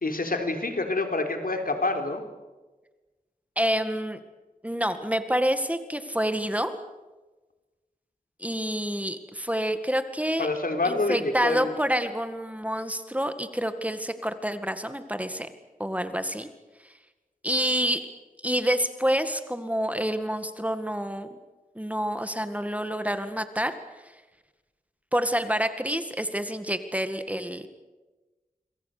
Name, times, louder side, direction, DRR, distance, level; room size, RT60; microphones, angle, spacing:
voice 1, 0.0-2.2 10.4-11.7, left 2 dB, 75° left, 5 dB, 3.8 m, -27 dB
voice 2, 3.6-4.2 4.6-6.7 8.4-10.5 10.8-15.5 15.8-16.5 17.4-18.1 18.4-21.3 21.8-23.7 25.1-27.7, equal, 10° right, 9 dB, 1.9 m, -28 dB
27.0 x 23.0 x 6.8 m, 1.2 s
wide cardioid pair, 65°, 15 cm